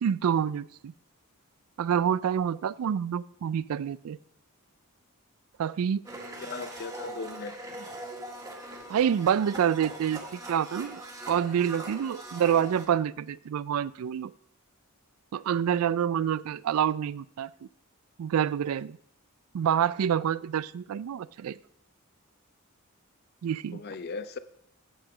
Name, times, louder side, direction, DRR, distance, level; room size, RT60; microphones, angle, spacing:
voice 1, 0.0-0.9 1.8-4.2 5.6-6.0 8.9-11.0 11.3-14.3 15.3-17.5 18.2-19.0 19.5-21.6 23.4-23.8, right 8 dB, 80° right, 20 dB, 0.3 m, -27 dB
Domestic sounds home sounds, 6.0-12.9, right 1 dB, 15° right, 1.5 m, -41 dB
voice 2, 6.4-7.9 23.7-24.4, left 4 dB, 50° left, 14 dB, 0.5 m, -38 dB
8.9 x 8.0 x 4.9 m, 0.70 s
head